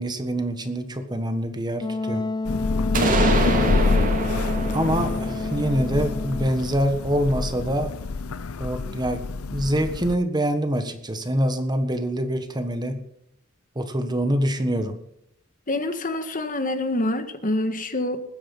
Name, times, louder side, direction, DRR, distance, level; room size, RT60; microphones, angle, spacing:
voice 1, 0.0-2.2 3.4-3.8 4.7-7.9 8.6-9.2 9.5-13.0 13.7-15.0, equal, 20° right, 8 dB, 1.4 m, -25 dB
Wind instrument woodwind instrument, 1.8-6.6, left 2 dB, 20° left, 0.5 m, -30 dB
Thunder / Rain, 2.4-10.1, left 3 dB, 85° left, 0.7 m, -26 dB
sound 1, 2.9-6.7, right 2 dB, 40° right, 2.6 m, -27 dB
voice 2, 3.0-3.5 15.7-18.2, left 1 dB, 40° left, 9 dB, 1.6 m, -26 dB
20.5 x 10.0 x 5.5 m, 0.74 s
head